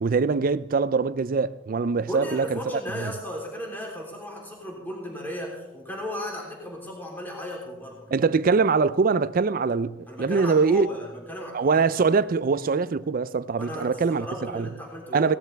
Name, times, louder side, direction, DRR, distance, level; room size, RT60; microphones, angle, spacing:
voice 1, 0.0-2.6 3.0-3.1 8.1-10.9 11.5-14.7 15.1-15.3, right 4 dB, 50° right, 0.4 m, -23 dB
voice 2, 2.0-8.1 10.1-11.8 13.6-15.4, equal, 10° left, 3.4 m, -35 dB
18.0 x 13.5 x 3.4 m
head